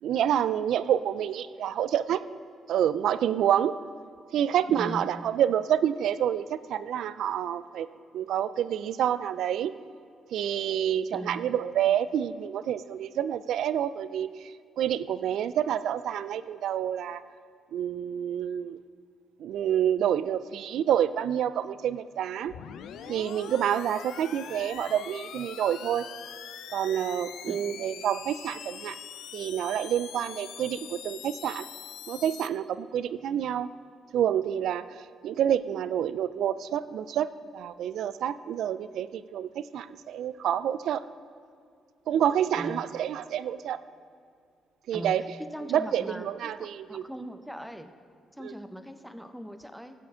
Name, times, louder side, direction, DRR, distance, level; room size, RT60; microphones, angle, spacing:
voice 1, 0.0-2.2 2.7-3.7 4.3-7.9 8.1-9.7 10.3-17.2 17.7-18.8 19.4-22.5 23.1-26.1 26.7-29.0 29.3-31.7 32.1-33.7 34.1-35.0 35.2-41.0 42.1-43.8 44.9-45.2 45.7-47.0 48.4-48.5, right 10 dB, 75° right, 15 dB, 0.3 m, -28 dB
voice 2, 4.7-5.1 11.1-11.5 27.5-27.6 42.6-42.8 44.9-45.1 45.5-47.9 48.4-49.9, equal, ahead, 8 dB, 0.7 m, -40 dB
sound 1, 22.5-32.5, left 9 dB, 80° left, 0.5 m, -43 dB
15.0 x 8.4 x 3.7 m, 2.3 s
cardioid pair, 90°, 0 cm